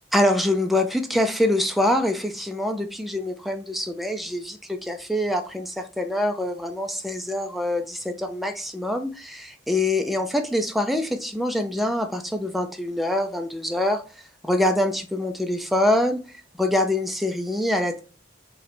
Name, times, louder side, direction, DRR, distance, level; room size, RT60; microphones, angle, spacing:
voice 1, 0.1-14.0 14.4-18.0, left 1 dB, ahead, 0.4 m, -25 dB
3.9 x 3.1 x 4.2 m
head